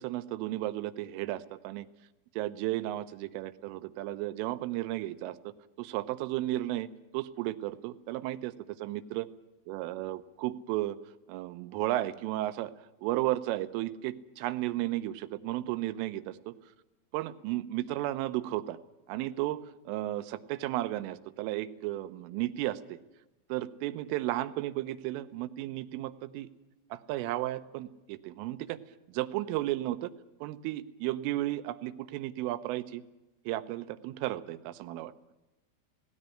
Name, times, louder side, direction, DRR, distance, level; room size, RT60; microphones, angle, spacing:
voice 1, 0.0-1.9 2.4-8.5 8.8-9.3 9.7-11.0 11.3-16.6 17.1-18.8 19.1-23.0 23.5-26.5 26.9-28.8 29.1-30.1 30.4-33.0 33.5-35.1, right 15 dB, 90° right, 13 dB, 3.5 m, -34 dB
17.5 x 17.5 x 9.8 m, 1.1 s
omnidirectional pair, 5.6 m